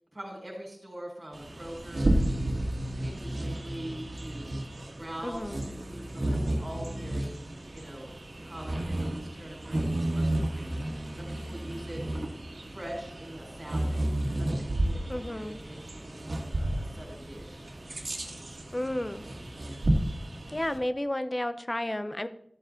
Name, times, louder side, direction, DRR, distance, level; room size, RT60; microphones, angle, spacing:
voice 1, 0.1-2.6 3.0-4.5 4.9-7.3 7.7-8.1 8.4-10.8 11.1-12.0 12.7-14.0 14.4-17.7, right 1 dB, 35° right, -2 dB, 4.9 m, -43 dB
Bird vocalization bird call bird song, 1.3-20.8, right 1 dB, 75° right, 1.8 m, -32 dB
voice 2, 5.2-5.6 15.1-15.6 18.7-19.2 20.5-22.3, left 1 dB, 30° left, 12 dB, 0.7 m, -32 dB
13.5 x 7.6 x 3.8 m, 0.71 s
wide cardioid pair, 45°, 0 cm